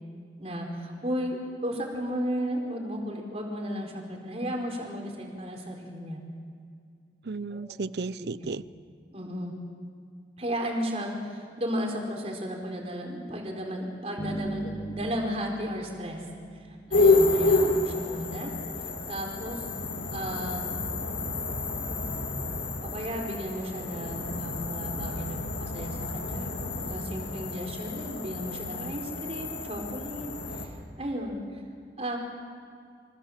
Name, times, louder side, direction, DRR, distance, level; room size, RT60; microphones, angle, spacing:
voice 1, 0.4-6.2 7.5-7.6 8.2-8.3 9.1-9.6 10.4-16.2 16.7-18.5 19.1-19.6 20.1-20.7 22.8-31.6 32.0-32.2, equal, 35° right, 1 dB, 4.7 m, -34 dB
voice 2, 7.2-8.6, right 3 dB, 65° right, 17 dB, 0.6 m, -34 dB
sound 1, 14.2-17.2, right 1 dB, 55° left, 4.8 m, -37 dB
sound 2, 16.9-30.7, left 2 dB, 85° left, 3.3 m, -29 dB
27.5 x 26.0 x 7.5 m, 2.3 s
head